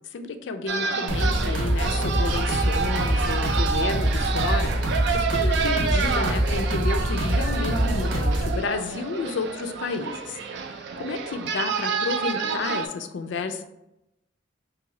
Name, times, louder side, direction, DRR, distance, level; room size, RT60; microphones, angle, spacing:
voice 1, 0.1-10.4 10.7-13.6, left 4 dB, 75° left, 8 dB, 0.4 m, -31 dB
sound 1, 0.7-12.9, right 5 dB, 65° right, 0.3 m, -29 dB
sound 2, 1.1-8.6, equal, 85° right, 0.9 m, -24 dB
3.0 x 2.7 x 3.7 m, 0.89 s
head